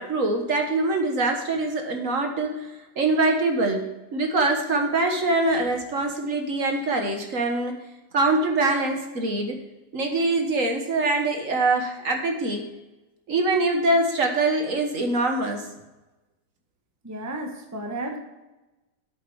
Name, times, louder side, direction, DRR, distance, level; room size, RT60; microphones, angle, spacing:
voice 1, 0.0-2.7 3.0-3.9 4.1-7.8 8.1-9.6 9.9-12.6 13.3-15.6, right 2 dB, 55° right, 3 dB, 1.6 m, -24 dB
voice 2, 17.0-18.2, right 1 dB, 10° right, 3 dB, 1.0 m, -33 dB
8.5 x 7.9 x 4.7 m, 1.0 s
omnidirectional pair, 1.8 m